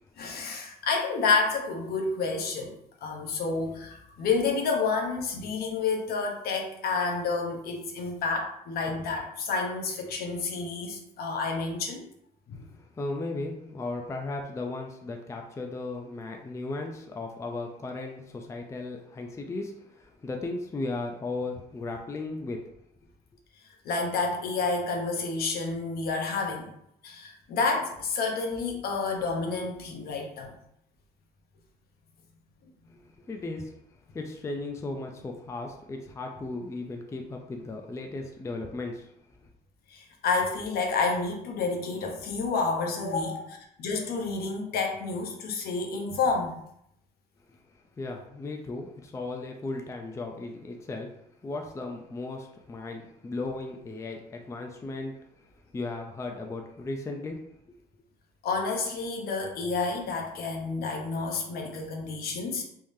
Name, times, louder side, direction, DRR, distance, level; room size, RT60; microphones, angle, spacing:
voice 1, 0.2-12.1 12.5-12.6 23.8-26.7 27.0-30.5 39.9-46.5 58.4-62.6, left 4 dB, 65° left, 1 dB, 0.8 m, -29 dB
voice 2, 12.7-22.6 32.9-33.8 34.1-39.1 48.0-57.5, left 2 dB, 15° left, 3 dB, 0.4 m, -36 dB
3.6 x 3.1 x 2.7 m, 0.74 s
cardioid pair, 110°, 17 cm